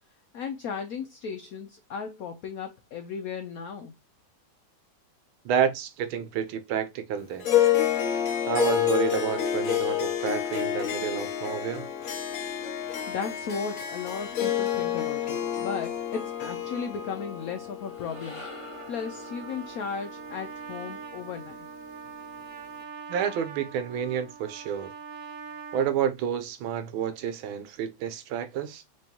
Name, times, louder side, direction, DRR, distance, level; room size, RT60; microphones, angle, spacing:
voice 1, 0.3-3.9 13.1-18.4 18.9-21.7, left 6 dB, 85° left, 0.7 m, -35 dB
voice 2, 5.4-7.5 8.5-11.9 23.1-24.9 25.7-28.8, right 8 dB, 90° right, 1.5 m, -29 dB
Harp, 7.4-20.0, left 10 dB, 55° left, 1.0 m, -29 dB
sound 1, 17.7-22.1, left 1 dB, 25° left, 0.8 m, -49 dB
Trumpet, 17.9-25.9, right 6 dB, 60° right, 1.1 m, -43 dB
4.6 x 3.0 x 2.8 m
omnidirectional pair, 2.2 m